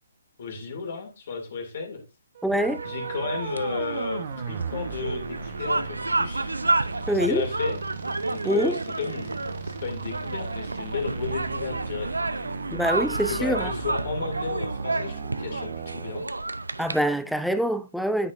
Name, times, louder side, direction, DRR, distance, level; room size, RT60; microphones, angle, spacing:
voice 1, 0.4-2.0 2.8-6.5 7.3-7.8 8.3-9.3 9.6-12.1 13.3-16.3, left 5 dB, 50° left, 2.5 m, -33 dB
sound 1, 2.3-16.2, right 6 dB, 45° right, 1.1 m, -37 dB
voice 2, 2.4-2.8 7.1-7.5 8.4-8.8 12.7-13.7 16.8-18.3, equal, ahead, 0.5 m, -25 dB
sound 2, 2.5-17.0, right 2 dB, 80° right, 0.6 m, -31 dB
9.6 x 7.8 x 2.6 m
figure-of-eight pair, 135°, 0 cm